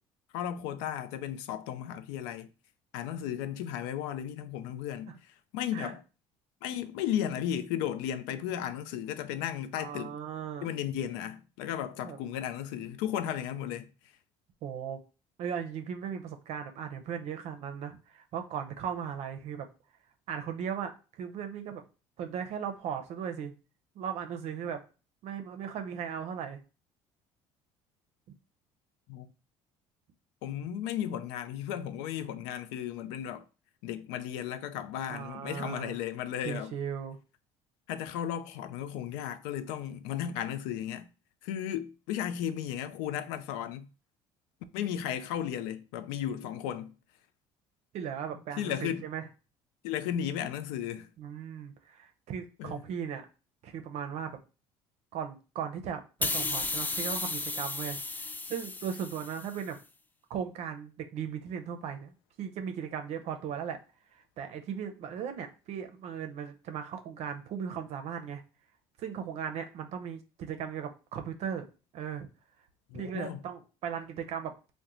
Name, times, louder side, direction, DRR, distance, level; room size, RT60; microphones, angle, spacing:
voice 1, 0.3-2.5 2.9-6.0 6.6-10.2 10.6-13.9 29.1-29.3 30.4-33.4 33.8-36.7 37.9-41.1 41.4-43.9 44.7-47.0 48.6-49.0 49.8-51.1 52.6-52.8 72.9-73.4, left 10 dB, 85° left, 0.4 m, -35 dB
voice 2, 9.8-10.7 12.0-12.2 14.6-15.0 15.4-19.7 20.3-21.8 22.2-23.5 24.0-24.8 25.2-26.6 35.1-35.9 36.4-37.2 47.9-49.2 51.2-53.3 53.6-54.4 55.1-59.8 60.3-63.8 64.1-68.4 69.0-71.7 71.9-72.3 72.9-74.5, right 8 dB, 60° right, 0.6 m, -37 dB
sound 1, 56.2-59.6, left 3 dB, 15° left, 0.3 m, -34 dB
2.9 x 2.1 x 3.6 m
supercardioid pair, 90°, 12 cm